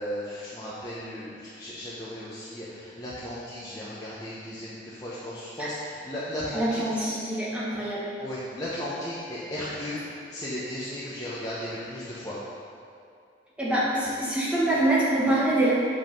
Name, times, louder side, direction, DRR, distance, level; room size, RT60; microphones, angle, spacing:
voice 1, 0.0-6.8 8.2-10.0 10.3-12.4, left 1 dB, 20° left, -9 dB, 1.0 m, -35 dB
voice 2, 6.5-8.1 13.6-15.7, right 1 dB, 5° right, -8 dB, 1.5 m, -25 dB
8.2 x 5.4 x 5.4 m, 2.4 s
head